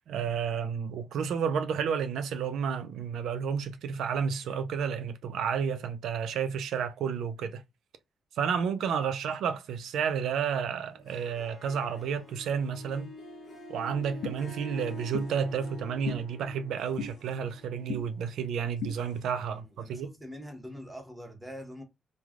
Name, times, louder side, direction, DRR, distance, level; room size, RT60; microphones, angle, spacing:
voice 1, 0.1-7.6 8.4-13.1 13.7-20.1, right 7 dB, 85° right, 0.4 m, -31 dB
Harp, 10.9-19.5, left 2 dB, 40° left, 0.8 m, -47 dB
sound 1, 14.2-14.4 15.1-15.3 16.1-16.2 17.0-17.1 17.9-18.0 18.8-19.0, left 5 dB, 70° left, 0.4 m, -34 dB
voice 2, 19.5-21.8, equal, 10° right, 0.9 m, -44 dB
3.1 x 2.2 x 2.4 m
cardioid pair, 100°, 0 cm